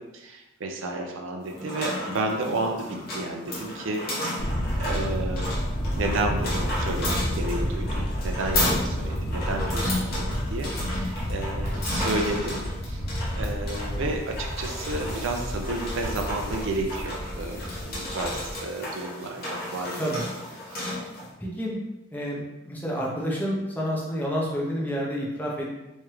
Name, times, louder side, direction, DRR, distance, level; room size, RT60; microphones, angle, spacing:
voice 1, 0.0-5.5 6.0-13.0 13.3-20.0 20.7-20.8, right 2 dB, 75° right, 2 dB, 0.5 m, -32 dB
sound 1, 1.4-21.3, left 1 dB, 45° left, 1.1 m, -33 dB
Thunder, 4.4-18.6, equal, 70° left, 1.1 m, -30 dB
voice 2, 21.4-21.8 22.1-25.8, equal, 10° left, -4 dB, 0.7 m, -29 dB
3.6 x 3.1 x 3.1 m, 0.98 s
head